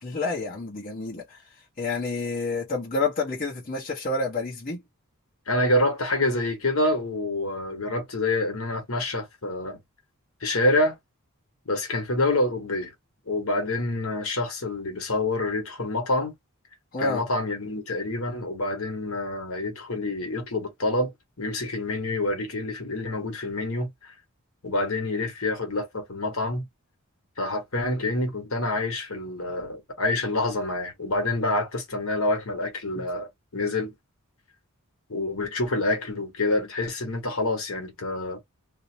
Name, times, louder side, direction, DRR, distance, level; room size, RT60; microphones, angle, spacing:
voice 1, 0.0-1.4 1.8-4.8 16.9-17.2 33.0-33.1, left 3 dB, 40° left, 0.9 m, -29 dB
voice 2, 5.5-9.8 10.4-11.0 11.7-12.9 13.3-16.3 17.0-21.1 21.4-23.9 24.6-26.7 27.4-33.9 35.1-38.4, left 2 dB, 65° left, 1.2 m, -27 dB
2.7 x 2.0 x 2.8 m
head